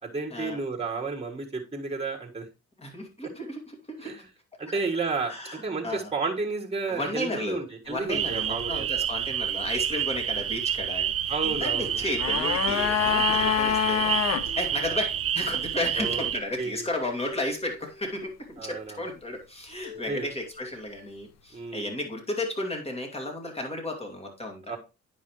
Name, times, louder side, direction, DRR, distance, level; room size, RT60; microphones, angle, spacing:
voice 1, 0.0-2.4 4.0-4.2 4.6-5.3 5.6-8.9 11.3-12.0 14.9-15.0 15.9-16.2 16.6-16.9 18.6-19.0 20.1-20.3 21.5-21.9 24.7-24.8, right 4 dB, 20° right, 0 dB, 1.6 m, -32 dB
voice 2, 2.8-4.1 4.7-4.8 5.3-6.1 6.9-7.6 7.9-24.7, left 1 dB, 20° left, 2 dB, 2.4 m, -33 dB
sound 1, 8.1-16.4, right 9 dB, 45° right, 0.7 m, -29 dB
sound 2, 8.3-9.1 11.5-12.3 14.4-15.3 17.3-18.1 19.8-20.7, left 2 dB, 45° left, 3.5 m, -47 dB
sound 3, 11.9-14.5 14.7-14.8, left 9 dB, 60° left, 0.7 m, -26 dB
9.4 x 5.4 x 3.1 m, 0.28 s
cardioid pair, 90°, 30 cm